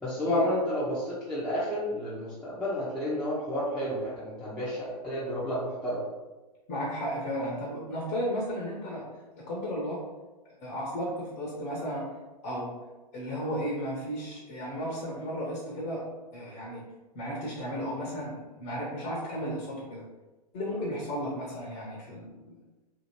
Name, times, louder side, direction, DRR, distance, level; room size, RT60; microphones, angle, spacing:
voice 1, 0.0-6.0, equal, 5° left, -11 dB, 0.7 m, -31 dB
voice 2, 6.7-9.0 9.5-10.0 10.6-12.1 12.4-12.8 13.1-16.1 16.3-16.8 17.1-20.0 20.5-22.5, equal, 35° left, -4 dB, 0.8 m, -34 dB
2.7 x 2.7 x 2.8 m, 1.1 s
figure-of-eight pair, 105°, 21 cm